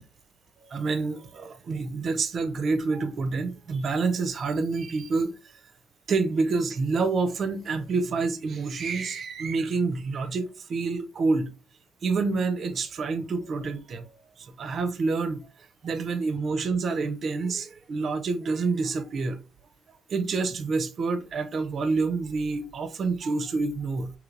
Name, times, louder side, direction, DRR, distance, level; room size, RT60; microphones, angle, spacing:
voice 1, 0.7-5.3 6.1-11.5 12.0-14.1 14.4-15.5 15.8-19.4 20.1-24.1, right 4 dB, 50° right, 0.4 m, -27 dB
3.1 x 2.9 x 2.5 m
cardioid pair, 105°, 0 cm